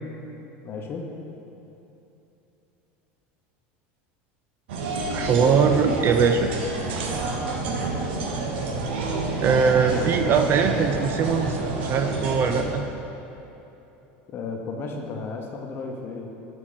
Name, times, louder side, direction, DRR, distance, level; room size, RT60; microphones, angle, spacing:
voice 1, 0.6-1.1 14.3-16.3, left 4 dB, 40° left, 2 dB, 0.8 m, -33 dB
sound 1, 4.7-12.6, right 3 dB, 85° right, 0.8 m, -28 dB
voice 2, 5.1-6.5 9.4-12.9, right 6 dB, 40° right, 6 dB, 0.4 m, -21 dB
8.1 x 4.5 x 3.9 m, 3.0 s
supercardioid pair, 120°, 6 cm